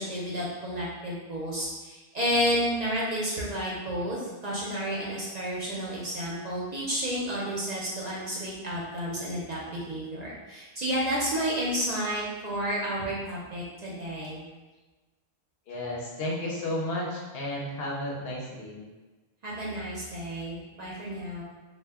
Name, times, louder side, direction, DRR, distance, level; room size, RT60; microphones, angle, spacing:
voice 1, 0.0-14.4 19.4-21.4, equal, 50° right, -6 dB, 0.5 m, -31 dB
voice 2, 15.7-18.8, left 1 dB, 75° left, -3 dB, 0.8 m, -33 dB
2.1 x 2.1 x 3.4 m, 1.2 s
omnidirectional pair, 1.0 m